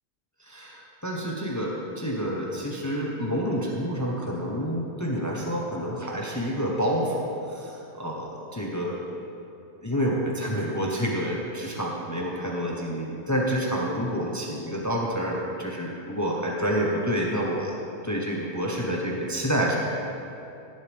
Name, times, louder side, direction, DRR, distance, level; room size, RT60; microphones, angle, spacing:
voice 1, 0.4-9.1 9.8-17.7 18.0-19.8, equal, 15° left, -2 dB, 1.1 m, -28 dB
16.0 x 10.5 x 3.6 m, 2.7 s
omnidirectional pair, 1.1 m